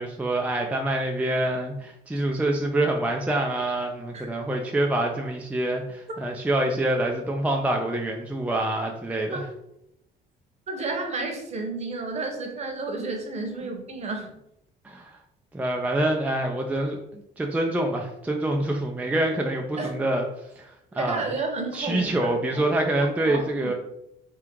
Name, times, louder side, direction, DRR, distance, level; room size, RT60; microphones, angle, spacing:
voice 1, 0.0-9.4 14.8-15.2 15.5-17.0 17.4-20.2 20.6-21.3 21.7-23.7, right 1 dB, 10° right, 1 dB, 0.4 m, -26 dB
voice 2, 10.7-14.3 19.8-19.9 20.9-22.7 23.3-23.7, right 3 dB, 40° right, 3 dB, 1.0 m, -31 dB
3.7 x 2.4 x 4.5 m, 0.80 s
cardioid pair, 110°, 17 cm